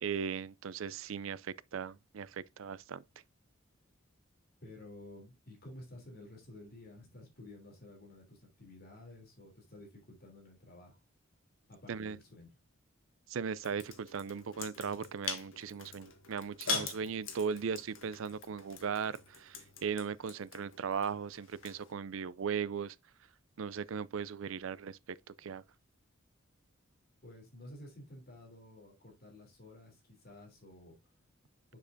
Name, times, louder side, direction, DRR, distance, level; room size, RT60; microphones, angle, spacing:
voice 1, 0.0-3.0 11.9-12.2 13.3-22.9 23.6-25.6, right 6 dB, 70° right, 0.4 m, -38 dB
voice 2, 4.6-11.0 11.7-12.5 27.2-31.0, left 1 dB, 45° left, 3.2 m, -52 dB
sound 1, 13.6-21.9, left 4 dB, 70° left, 1.6 m, -43 dB
7.2 x 6.8 x 2.6 m
head